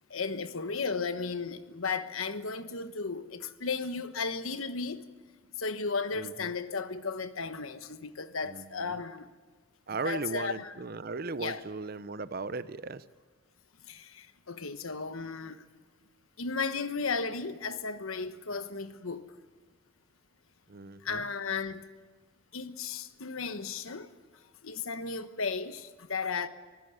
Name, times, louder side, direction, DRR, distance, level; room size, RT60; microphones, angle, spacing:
voice 1, 0.1-5.1 5.6-9.3 10.0-10.8 11.4-11.6 13.8-15.6 16.4-19.3 21.0-21.9 22.5-24.1 24.6-26.5, left 4 dB, 85° left, 1.2 m, -35 dB
voice 2, 6.1-6.5 8.4-9.0 9.9-13.0 20.7-21.2, right 3 dB, 45° right, 0.7 m, -37 dB
24.5 x 15.5 x 9.5 m
head